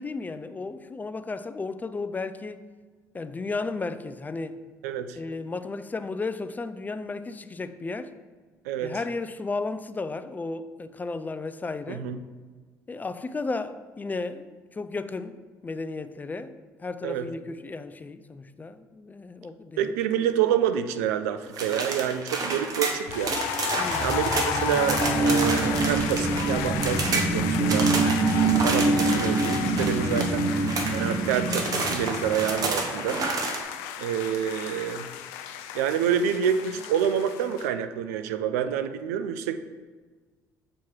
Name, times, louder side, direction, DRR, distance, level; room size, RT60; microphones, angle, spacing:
voice 1, 0.0-2.6 3.1-4.6 5.2-8.1 8.8-12.0 12.9-19.9 23.8-24.2, left 3 dB, 20° left, 12 dB, 0.4 m, -34 dB
voice 2, 4.8-5.2 8.7-9.0 11.9-12.2 17.0-17.3 19.8-23.4 24.0-27.9 28.3-30.5 30.9-33.2 34.0-35.1 35.7-39.5, right 9 dB, 85° right, 10 dB, 0.4 m, -27 dB
sound 1, 21.5-26.5 26.8-27.3 27.7-31.2 31.5-33.6, right 3 dB, 50° right, 1.0 m, -30 dB
sound 2, 23.1-37.7, left 9 dB, 80° left, 0.5 m, -34 dB
sound 3, 23.6-32.8, right 3 dB, 25° right, 0.8 m, -26 dB
7.2 x 3.0 x 4.6 m, 1.4 s
hypercardioid pair, 70°, 8 cm